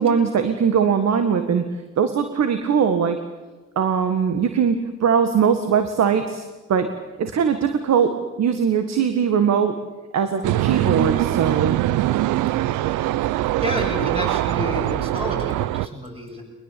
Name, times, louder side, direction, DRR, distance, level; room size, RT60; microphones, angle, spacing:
voice 1, 0.0-1.7 2.0-3.2 3.8-6.9 7.2-9.8 10.1-11.8, right 7 dB, 60° right, 8 dB, 1.8 m, -20 dB
sound 1, 10.4-15.9, right 15 dB, 90° right, 0.7 m, -22 dB
voice 2, 13.6-16.4, left 1 dB, 20° right, 0 dB, 7.9 m, -30 dB
22.0 x 21.0 x 8.5 m, 1.2 s
cardioid pair, 90°, 30 cm